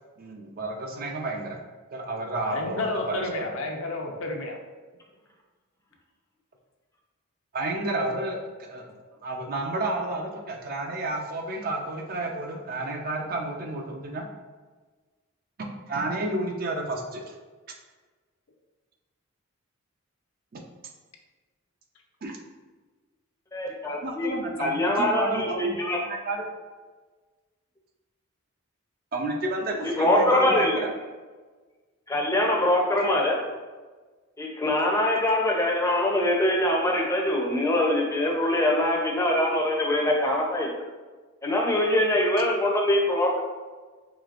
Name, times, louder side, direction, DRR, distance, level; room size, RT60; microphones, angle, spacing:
voice 1, 0.2-1.6 1.9-3.2 7.5-8.9 9.2-14.3 15.9-17.3 20.5-20.6 22.2-22.4 23.8-26.4 29.1-30.9, right 2 dB, 40° right, 2 dB, 0.5 m, -31 dB
voice 2, 2.4-4.6, left 2 dB, 65° left, 1 dB, 0.6 m, -30 dB
voice 3, 23.5-24.3 24.6-26.0 30.0-30.8 32.1-33.4 34.4-40.7 41.4-43.4, left 1 dB, 15° left, -1 dB, 0.6 m, -23 dB
4.9 x 3.2 x 2.4 m, 1.4 s
head